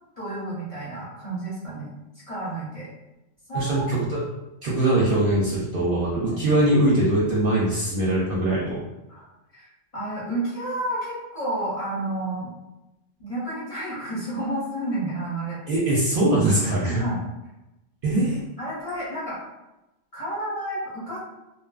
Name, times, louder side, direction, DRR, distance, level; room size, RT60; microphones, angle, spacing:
voice 1, 0.2-1.9 2.3-2.9 3.5-3.9 6.2-6.4 9.1-9.3 9.5-9.7 9.9-12.5 13.2-15.6 16.8-17.2 18.6-19.4 20.1-21.2, right 1 dB, 35° left, -8 dB, 0.9 m, -30 dB
voice 2, 3.5-4.2 4.6-8.8 15.7-17.0 18.0-18.4, right 1 dB, 60° right, -5 dB, 0.6 m, -22 dB
2.6 x 2.3 x 2.3 m, 0.96 s
omnidirectional pair, 1.3 m